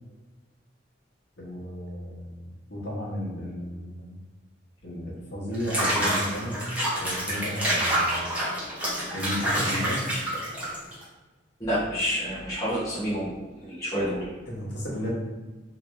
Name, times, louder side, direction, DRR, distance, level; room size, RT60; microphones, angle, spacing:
voice 1, 1.4-4.1 4.8-6.6 7.0-8.2 9.1-10.1 14.5-15.1, equal, 65° left, -4 dB, 1.1 m, -33 dB
Water / Bathtub (filling or washing), 5.5-11.0, right 1 dB, 10° right, 1.0 m, -27 dB
voice 2, 11.6-13.3 13.6-14.3, equal, 20° left, -11 dB, 0.8 m, -28 dB
2.9 x 2.8 x 3.2 m, 1.2 s
head